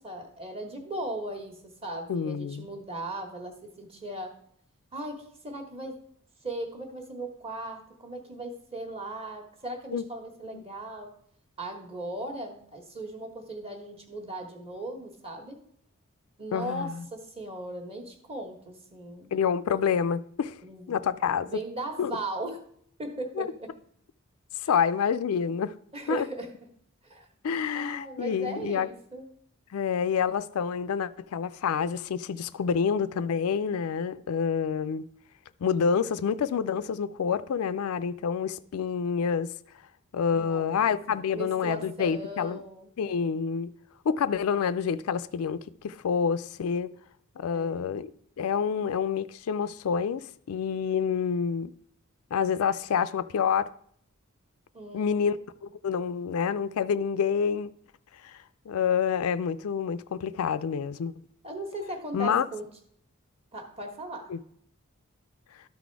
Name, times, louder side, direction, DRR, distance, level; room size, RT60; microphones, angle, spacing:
voice 1, 0.0-1.5 1.8-4.3 4.9-6.0 6.4-11.1 11.6-15.6 16.4-19.4 20.6-21.0 21.3-22.6 23.0-23.7 24.6-24.7 25.9-26.5 27.0-27.3 27.7-29.3 40.3-42.9 47.5-48.0 54.7-55.3 61.4-62.6 63.5-64.3, right 1 dB, 25° right, 1.3 m, -38 dB
voice 2, 2.1-2.7 9.9-10.0 10.5-10.6 16.5-17.0 19.3-20.6 20.9-21.5 22.0-22.1 23.4-23.5 24.6-25.7 26.1-26.3 27.4-28.9 29.7-35.0 35.6-39.5 40.1-42.6 43.0-43.7 44.0-45.6 45.8-46.9 47.4-48.1 48.4-51.7 52.3-53.7 54.9-55.4 55.6-57.7 58.2-58.4 58.7-61.1 62.1-62.4 64.3-64.4, left 6 dB, 75° left, 0.4 m, -27 dB
12.5 x 4.2 x 4.6 m
head